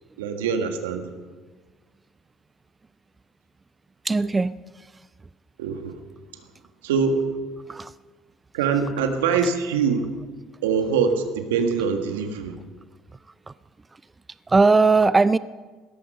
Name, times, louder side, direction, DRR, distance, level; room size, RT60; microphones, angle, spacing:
voice 1, 0.2-1.1 5.6-6.0 6.8-7.2 8.5-10.1 10.6-12.6, right 6 dB, 85° right, 6 dB, 1.6 m, -23 dB
voice 2, 4.0-4.9 7.7-7.9 13.5-13.6 14.5-15.4, right 3 dB, 20° right, 16 dB, 0.4 m, -19 dB
18.0 x 14.0 x 5.6 m, 1.4 s
hypercardioid pair, 70°, 0 cm